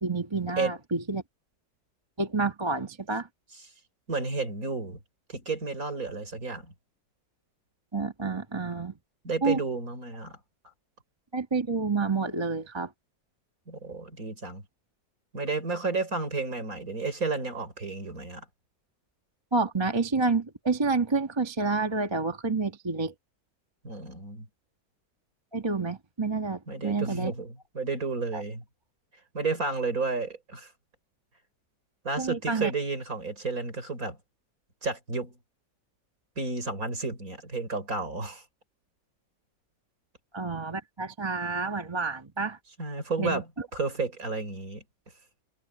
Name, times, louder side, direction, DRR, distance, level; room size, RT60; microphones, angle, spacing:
voice 1, 0.0-1.2 2.2-3.3 7.9-8.9 9.4-9.6 11.3-12.9 19.5-23.1 25.5-27.3 28.3-28.4 32.2-32.7 40.3-42.6 43.2-43.4, right 4 dB, 15° right, 1.2 m, -29 dB
voice 2, 4.1-5.0 5.3-6.7 9.2-10.4 13.7-14.6 15.3-18.4 23.8-24.5 26.7-28.6 29.3-30.7 32.0-34.2 34.8-35.4 36.4-38.4 42.8-44.8, right 3 dB, 45° right, 5.0 m, -32 dB
omnidirectional pair, 2.0 m